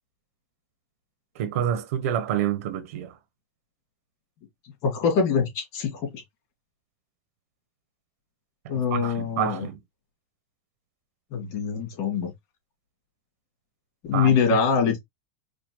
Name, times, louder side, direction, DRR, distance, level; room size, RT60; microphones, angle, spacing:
voice 1, 1.3-3.2 8.6-9.8 14.1-14.4 14.8-14.9, right 10 dB, 75° right, 1.0 m, -28 dB
voice 2, 4.8-6.2 8.7-9.7 11.3-12.3 14.0-15.0, left 6 dB, 50° left, 2.3 m, -24 dB
4.9 x 2.3 x 3.2 m
supercardioid pair, 135°, 8 cm